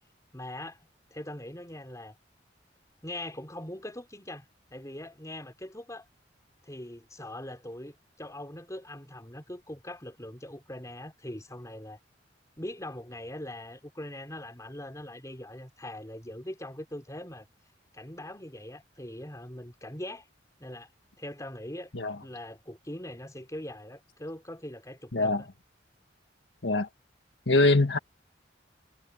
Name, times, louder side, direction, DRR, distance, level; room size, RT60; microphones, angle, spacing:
voice 1, 0.3-0.8 1.1-2.1 3.0-4.5 4.7-6.0 6.6-12.0 12.6-17.5 17.9-20.3 20.6-20.9 21.2-21.9 22.2-25.5, left 1 dB, 20° left, 4.4 m, -41 dB
voice 2, 25.1-25.4 26.6-26.9 27.5-28.0, left 2 dB, 75° left, 1.6 m, -23 dB
head